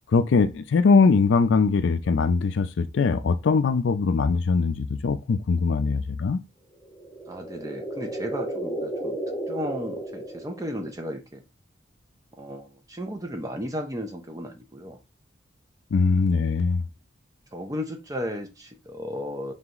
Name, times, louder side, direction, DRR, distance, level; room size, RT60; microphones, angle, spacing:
voice 1, 0.1-6.4 15.9-16.8, left 4 dB, 75° left, 0.4 m, -21 dB
sound 1, 6.8-11.1, right 1 dB, 15° left, 1.1 m, -33 dB
voice 2, 7.3-9.2 9.5-11.4 12.4-15.0 16.1-16.4 17.5-19.5, equal, 20° right, 0.6 m, -34 dB
3.9 x 3.3 x 2.9 m
head